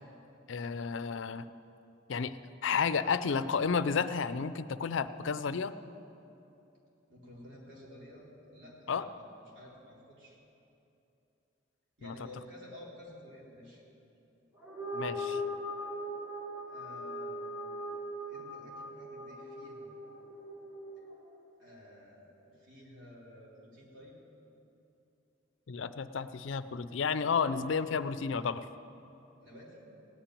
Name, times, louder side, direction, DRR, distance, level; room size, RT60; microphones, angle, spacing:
voice 1, 0.5-1.5 2.1-2.4 2.6-5.7 8.9-9.0 12.0-12.1 14.9-15.4 25.7-28.7, left 5 dB, 75° left, 13 dB, 0.5 m, -32 dB
voice 2, 7.1-10.4 12.0-13.8 16.7-17.4 18.3-19.9 21.6-24.2 29.4-29.9, left 1 dB, 65° right, -6 dB, 4.1 m, -52 dB
sound 1, 14.5-21.1, left 1 dB, 10° right, 3.0 m, -40 dB
17.5 x 6.0 x 9.9 m, 2.9 s
head